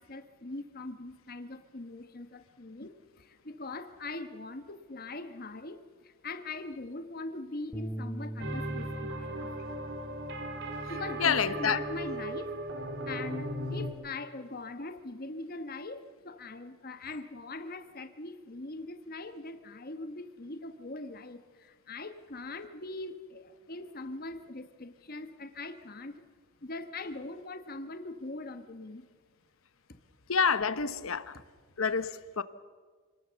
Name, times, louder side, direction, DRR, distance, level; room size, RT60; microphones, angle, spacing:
voice 1, 0.0-9.5 10.9-12.5 13.1-26.2 26.6-29.0, left 2 dB, 45° left, 1.3 m, -41 dB
Bass guitar, 7.7-14.0, right 1 dB, 10° left, 1.5 m, -44 dB
sound 1, 8.4-13.9, right 1 dB, 55° right, 2.9 m, -37 dB
voice 2, 11.2-11.8 30.3-31.4 31.8-32.4, left 6 dB, 75° left, 1.0 m, -28 dB
28.0 x 19.0 x 7.0 m
head